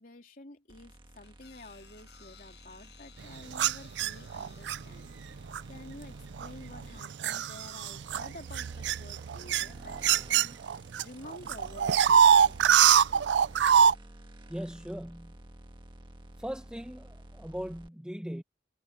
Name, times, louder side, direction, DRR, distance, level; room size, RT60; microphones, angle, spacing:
voice 1, 0.0-5.4 5.7-13.3, left 1 dB, 50° left, 3.6 m, -50 dB
sound 1, 0.7-17.9, right 1 dB, 25° right, 1.5 m, -51 dB
sound 2, 1.2-6.6, left 9 dB, 65° left, 6.1 m, -59 dB
sound 3, 3.5-4.8 5.5-5.8 6.4-11.0 11.3-13.9, right 8 dB, 75° right, 0.4 m, -23 dB
voice 2, 14.5-15.4 16.4-18.4, equal, 5° right, 0.8 m, -39 dB
head